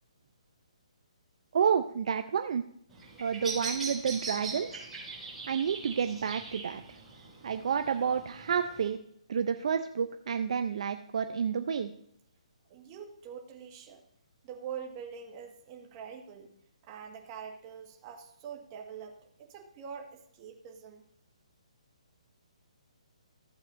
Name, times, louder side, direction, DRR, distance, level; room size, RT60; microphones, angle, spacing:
voice 1, 1.5-2.6 3.2-4.9 5.5-6.8 7.4-9.0 9.3-11.9, right 7 dB, 60° right, 8 dB, 0.5 m, -30 dB
Bird vocalization bird call bird song, 2.9-8.9, right 3 dB, 5° right, 4.3 m, -41 dB
voice 2, 12.7-14.0 14.4-16.5 16.8-21.0, right 7 dB, 30° right, 2 dB, 1.7 m, -44 dB
15.0 x 7.9 x 2.6 m, 0.69 s
hypercardioid pair, 150°, 4 cm